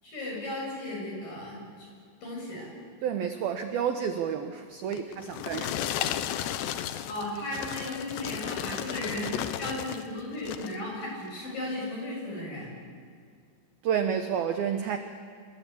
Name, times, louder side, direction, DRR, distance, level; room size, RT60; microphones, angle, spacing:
voice 1, 0.0-1.9 2.2-2.7 7.1-9.3 9.6-12.7, left 1 dB, 45° left, -2 dB, 9.7 m, -35 dB
voice 2, 3.0-5.8 13.8-15.0, right 8 dB, 75° right, 7 dB, 2.3 m, -30 dB
sound 1, 4.9-10.1 10.4-10.8 11.4-11.5, left 11 dB, 75° left, 2.8 m, -34 dB
28.0 x 23.0 x 8.6 m, 2.2 s
omnidirectional pair, 5.7 m